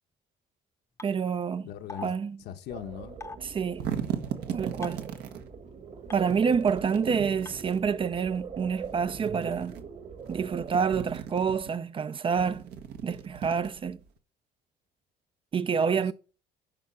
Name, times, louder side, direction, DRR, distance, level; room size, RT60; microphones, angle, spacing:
sound 1, 1.0-1.1 1.9-2.1 3.2-3.4 4.8-5.1 6.1-6.2 7.5-7.6, left 3 dB, 15° left, 0.7 m, -40 dB
voice 1, 1.0-1.7 2.0-2.3 3.5-3.9 4.5-5.1 6.1-9.8 10.3-12.7 13.0-14.0 15.5-16.1, right 6 dB, 30° right, 0.5 m, -28 dB
voice 2, 1.6-3.2 6.9-7.3 15.7-16.1, left 10 dB, 75° left, 1.1 m, -42 dB
sound 2, 2.7-11.0, right 6 dB, 45° right, 1.7 m, -43 dB
sound 3, 3.5-5.4 6.2-7.8 8.8-9.8 10.2-11.7 12.3-14.1, right 8 dB, 75° right, 1.3 m, -37 dB
11.0 x 4.2 x 6.1 m
cardioid pair, 110°, 17 cm